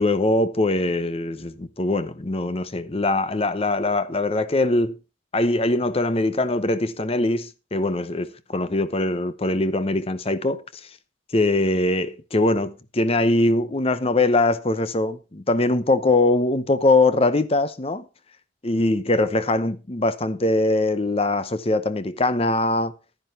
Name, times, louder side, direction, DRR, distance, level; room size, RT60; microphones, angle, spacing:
voice 1, 0.0-5.0 5.3-10.9 11.3-18.1 18.6-22.9, left 2 dB, 30° left, 0.8 m, -22 dB
11.5 x 10.0 x 4.3 m
head